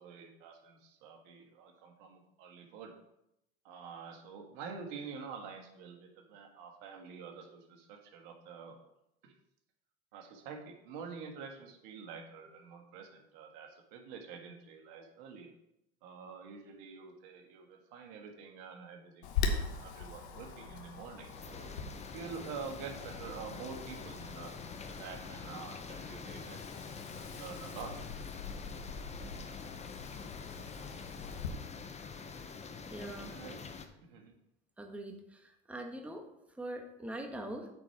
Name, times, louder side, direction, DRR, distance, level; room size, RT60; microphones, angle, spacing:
voice 1, 0.0-2.9 3.6-8.8 9.2-9.3 10.1-15.5 16.0-21.7 22.1-27.9 33.3-33.6 34.1-34.3, right 6 dB, 70° right, 3 dB, 1.6 m, -47 dB
Wind, 19.2-31.5, left 5 dB, 85° left, 1.3 m, -42 dB
sound 1, 21.2-33.9, left 5 dB, 20° left, 0.9 m, -46 dB
voice 2, 32.9-33.3 34.8-36.3 36.6-37.7, right 1 dB, 5° right, 3 dB, 1.3 m, -42 dB
8.7 x 4.6 x 5.9 m, 0.83 s
supercardioid pair, 90°, 32 cm